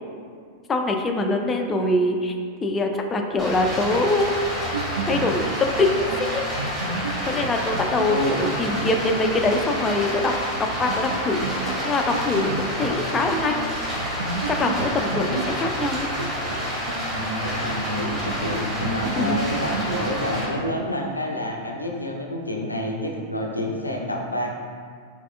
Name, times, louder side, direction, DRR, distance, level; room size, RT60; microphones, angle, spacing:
voice 1, 0.7-2.3 2.6-4.5 5.1-6.4 7.3-10.3 10.8-11.4 11.8-13.6 14.5-16.1 19.2-19.4, left 2 dB, 20° left, 3 dB, 0.3 m, -23 dB
Stream, 3.4-20.4, equal, 15° right, 1.5 m, -29 dB
sound 1, 4.2-10.0 10.3-10.4 10.7-13.7 14.0-17.7 18.1-20.9, right 4 dB, 65° right, 0.4 m, -32 dB
voice 2, 17.1-24.6, left 1 dB, 85° left, 0 dB, 0.4 m, -28 dB
4.7 x 3.4 x 2.3 m, 2.1 s
figure-of-eight pair, 90°, 0 cm